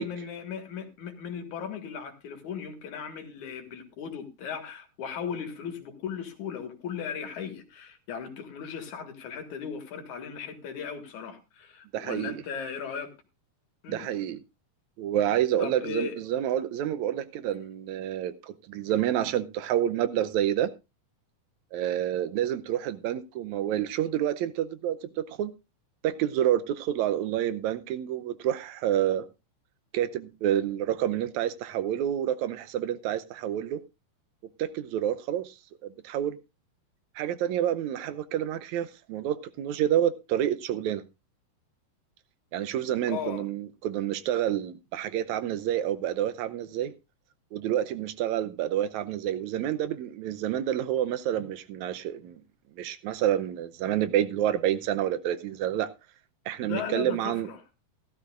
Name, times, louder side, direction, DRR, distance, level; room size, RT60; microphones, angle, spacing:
voice 1, 0.0-13.1 13.8-14.1 15.6-16.2 18.7-18.8 43.1-43.5 51.4-51.5 56.6-57.6, left 7 dB, 70° left, 3.0 m, -37 dB
voice 2, 11.9-12.3 13.9-14.4 15.0-20.7 21.7-25.0 25.3-25.5 26.0-29.3 29.9-33.8 34.6-35.6 35.8-36.4 37.2-41.0 42.5-46.9 47.5-52.4 52.8-55.9 56.5-57.5, right 11 dB, 75° right, 1.9 m, -28 dB
16.0 x 13.0 x 2.5 m
omnidirectional pair, 3.7 m